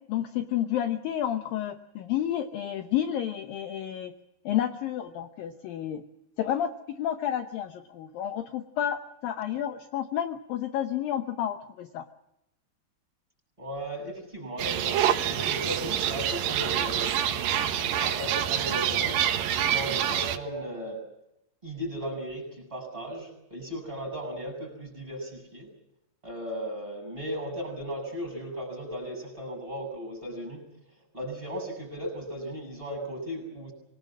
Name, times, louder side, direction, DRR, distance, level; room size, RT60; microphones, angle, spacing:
voice 1, 0.1-4.1 4.5-6.0 6.4-12.1, left 11 dB, 75° left, 8 dB, 2.1 m, -30 dB
voice 2, 13.6-19.2 19.5-21.0 21.6-25.7 26.2-30.6 31.1-33.7, equal, 10° right, 6 dB, 7.7 m, -36 dB
sound 1, 14.6-20.4, right 10 dB, 65° right, 2.4 m, -27 dB
26.5 x 19.0 x 7.5 m, 0.85 s
omnidirectional pair, 5.4 m